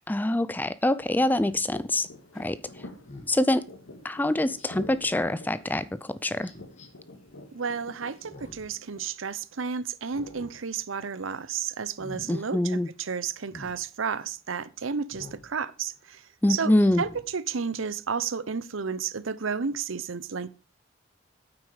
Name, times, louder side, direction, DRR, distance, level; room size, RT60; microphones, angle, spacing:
voice 1, 0.1-2.1 2.4-2.6 3.3-3.6 4.0-6.5 12.3-12.9 16.4-17.0, left 1 dB, 10° left, 0.4 m, -25 dB
sound 1, 1.0-9.0, left 2 dB, 90° left, 2.1 m, -48 dB
Speech synthesizer, 1.4-1.6 3.1-3.3 4.6-5.1 6.4-6.9 8.2-8.7 9.1-9.2 10.0-10.5 10.9-11.2 11.8-12.3 13.5-13.8 15.1-15.5 15.9-16.0 16.7-17.2 17.7-17.8, left 1 dB, 35° left, 2.1 m, -46 dB
voice 2, 7.5-20.5, right 6 dB, 85° right, 0.8 m, -32 dB
9.1 x 8.7 x 4.9 m
head